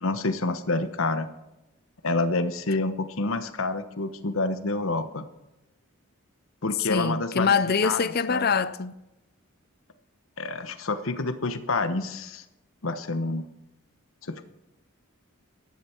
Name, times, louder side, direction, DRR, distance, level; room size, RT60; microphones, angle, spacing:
voice 1, 0.0-1.3 2.0-5.3 6.6-7.5 7.8-8.0 8.3-8.5 10.4-12.4 12.8-13.5 14.2-14.4, left 2 dB, 70° left, 1.1 m, -28 dB
voice 2, 6.8-8.9, left 5 dB, 45° left, 0.6 m, -24 dB
14.5 x 11.0 x 4.6 m
head